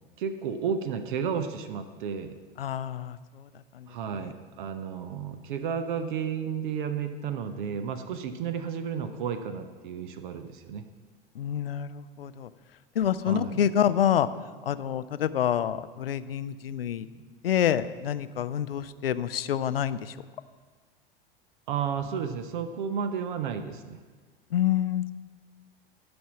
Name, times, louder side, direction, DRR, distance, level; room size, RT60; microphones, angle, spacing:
voice 1, 0.2-2.4 3.9-10.9 13.2-13.6 17.2-17.3 21.7-24.0, right 7 dB, 55° right, 9 dB, 0.7 m, -32 dB
voice 2, 2.6-3.5 3.7-3.9 11.4-12.5 13.0-14.3 14.7-17.1 17.4-20.1 24.5-25.1, left 10 dB, 75° left, 15 dB, 0.5 m, -27 dB
11.0 x 5.2 x 7.1 m, 1.5 s
figure-of-eight pair, 80°, 29 cm